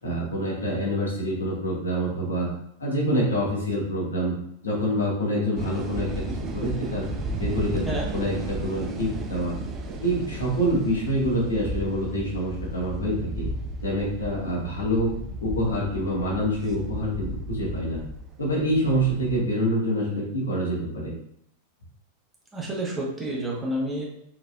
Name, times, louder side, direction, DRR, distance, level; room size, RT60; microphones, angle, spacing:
voice 1, 0.0-2.5 2.8-4.3 4.6-7.1 7.4-9.6 9.9-13.5 13.8-15.1 15.4-18.0 18.4-21.1, equal, 70° left, -5 dB, 1.8 m, -26 dB
sound 1, 5.6-19.4, right 2 dB, 30° right, 0.6 m, -34 dB
voice 2, 22.5-24.0, right 1 dB, 10° right, -4 dB, 1.3 m, -29 dB
4.6 x 4.5 x 2.5 m, 0.75 s
figure-of-eight pair, 90°, 0 cm